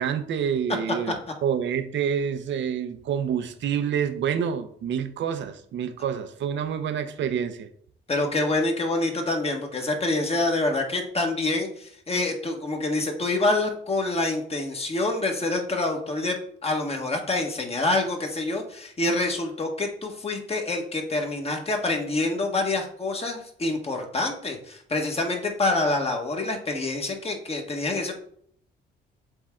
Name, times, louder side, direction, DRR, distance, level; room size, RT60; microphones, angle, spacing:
voice 1, 0.0-7.7, right 8 dB, 70° right, 9 dB, 0.8 m, -27 dB
voice 2, 8.1-28.1, left 2 dB, 30° left, 2 dB, 1.6 m, -26 dB
7.8 x 3.6 x 3.8 m, 0.63 s
cardioid pair, 90°, 20 cm